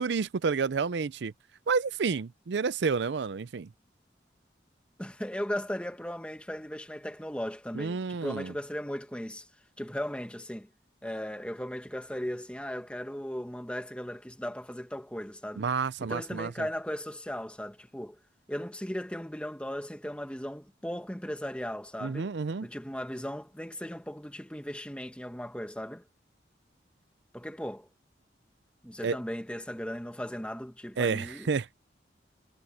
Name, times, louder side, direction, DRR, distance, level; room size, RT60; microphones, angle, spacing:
voice 1, 0.0-1.3 1.7-3.7 7.7-8.5 15.6-16.7 22.0-22.7 29.0-29.2 31.0-31.7, right 5 dB, 75° right, 0.5 m, -30 dB
voice 2, 5.0-9.5 9.8-10.7 11.0-15.6 16.0-18.2 18.5-22.3 22.6-26.0 27.3-27.9 28.8-31.5, equal, 5° left, 1.4 m, -37 dB
head